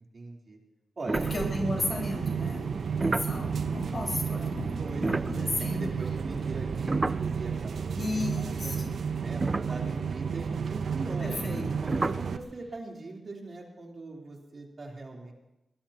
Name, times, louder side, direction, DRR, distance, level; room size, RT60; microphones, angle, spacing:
voice 1, 0.1-0.6 1.0-1.3 4.8-5.0 5.7-7.8 8.6-8.7 9.2-11.4 11.8-15.3, right 2 dB, 50° right, -2 dB, 3.6 m, -40 dB
sound 1, 1.0-2.1 2.7-7.9 8.2-8.3 9.0-9.1 9.4-10.5 11.9-12.3, right 3 dB, 30° right, 0.5 m, -33 dB
voice 2, 1.1-5.9 7.9-9.0 11.2-11.7, left 2 dB, 45° left, -1 dB, 5.2 m, -34 dB
sound 2, 1.1-12.4, right 6 dB, 80° right, 0.7 m, -32 dB
23.5 x 20.5 x 3.0 m, 0.94 s
wide cardioid pair, 95°, 0 cm